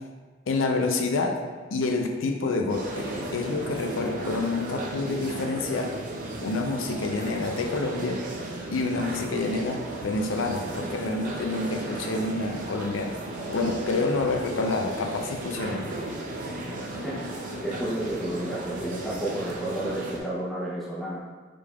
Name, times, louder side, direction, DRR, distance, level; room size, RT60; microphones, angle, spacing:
voice 1, 0.5-1.4 1.7-5.9 6.4-8.2 8.7-13.1 13.5-15.9, left 3 dB, 85° left, 3 dB, 0.5 m, -28 dB
sound 1, 2.7-20.2, right 1 dB, 45° right, 0.6 m, -35 dB
voice 2, 17.6-21.2, right 1 dB, ahead, -8 dB, 0.7 m, -31 dB
5.0 x 3.4 x 2.4 m, 1.4 s
head